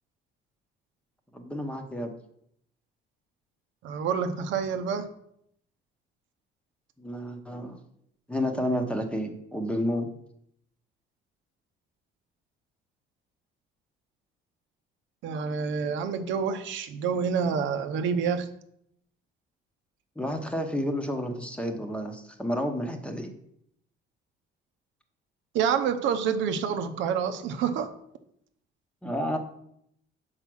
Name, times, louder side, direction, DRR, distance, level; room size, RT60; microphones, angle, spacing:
voice 1, 1.3-2.1 7.0-7.8 8.3-10.1 20.2-23.3 29.0-29.4, equal, 5° left, 5 dB, 1.0 m, -30 dB
voice 2, 3.8-5.1 15.2-18.5 25.5-27.9, right 6 dB, 75° right, 8 dB, 0.8 m, -28 dB
5.6 x 4.9 x 6.1 m, 0.73 s
cardioid pair, 120°, 20 cm